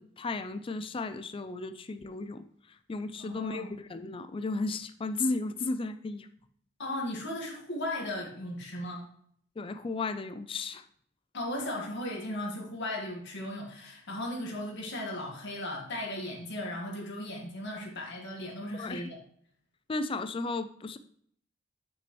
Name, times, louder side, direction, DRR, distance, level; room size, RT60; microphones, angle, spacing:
voice 1, 0.0-2.4 2.9-6.3 9.6-10.8 18.8-19.1 19.9-21.0, left 3 dB, 25° left, 10 dB, 0.4 m, -34 dB
voice 2, 3.2-3.7 6.8-9.1 11.3-19.2, left 1 dB, 60° left, -1 dB, 1.7 m, -36 dB
8.9 x 6.0 x 3.1 m, 0.62 s
head